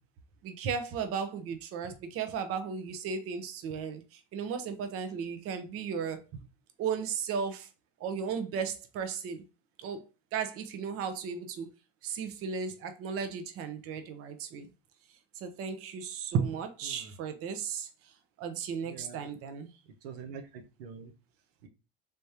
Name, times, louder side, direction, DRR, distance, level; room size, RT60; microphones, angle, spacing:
voice 1, 0.4-6.2 6.8-7.7 8.0-9.4 9.8-11.7 12.0-14.7 15.3-19.7, right 6 dB, 50° right, 0.8 m, -35 dB
voice 2, 18.8-19.3 20.0-21.1 21.6-21.7, right 6 dB, 85° right, 0.8 m, -45 dB
3.5 x 3.2 x 2.7 m
supercardioid pair, 100°, 29 cm